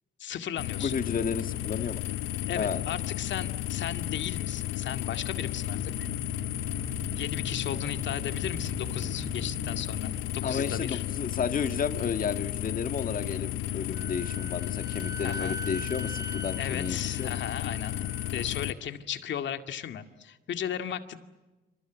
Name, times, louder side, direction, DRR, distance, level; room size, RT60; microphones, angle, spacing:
voice 1, 0.2-0.9 2.5-6.1 7.1-11.0 15.2-15.6 16.6-18.0 18.3-21.2, left 9 dB, 65° left, 8 dB, 2.1 m, -36 dB
sound 1, 0.6-18.7, left 14 dB, 90° left, 1.0 m, -33 dB
voice 2, 0.8-2.0 2.5-2.8 10.4-17.4, left 6 dB, 45° left, 9 dB, 1.8 m, -32 dB
sound 2, 5.6-10.7, right 5 dB, 60° right, 4.1 m, -43 dB
Wind instrument woodwind instrument, 13.9-18.4, right 1 dB, 15° right, 1.9 m, -42 dB
27.0 x 26.5 x 8.2 m, 1.1 s
cardioid pair, 90°, 20 cm